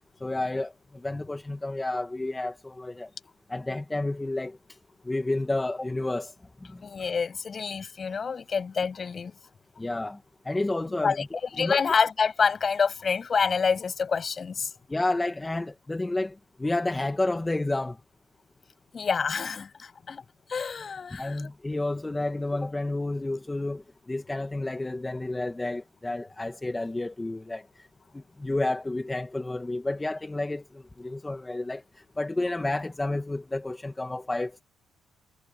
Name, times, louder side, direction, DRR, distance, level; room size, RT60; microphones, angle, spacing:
voice 1, 0.2-3.1 3.5-4.6 5.0-6.3 6.7-6.8 9.8-10.2 10.4-11.8 14.9-18.0 21.2-27.9 28.1-34.6, left 2 dB, 15° left, 1.7 m, -30 dB
voice 2, 6.8-9.3 11.0-11.2 11.6-14.7 18.9-20.2 20.5-21.5, left 5 dB, 40° left, 6.5 m, -27 dB
cardioid pair, 90°, 0 cm